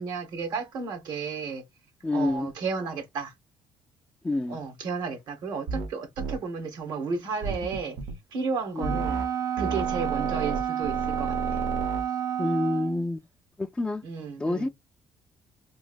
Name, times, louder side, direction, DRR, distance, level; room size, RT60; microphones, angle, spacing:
voice 1, 0.0-1.6 2.1-3.3 4.5-8.0 8.3-9.2 9.6-11.6 14.0-14.7, right 5 dB, 70° right, 1.1 m, -33 dB
voice 2, 2.0-2.5 4.2-4.6 8.7-8.9 12.4-13.2 13.6-14.0 14.4-14.7, left 2 dB, 10° left, 0.4 m, -27 dB
sound 1, 5.7-5.9 6.2-6.4 7.4-8.2 8.8-9.3 9.6-12.0, right 3 dB, 85° right, 0.7 m, -32 dB
Wind instrument woodwind instrument, 8.8-13.1, right 9 dB, 45° right, 0.5 m, -30 dB
3.0 x 2.5 x 2.4 m
cardioid pair, 85°, 8 cm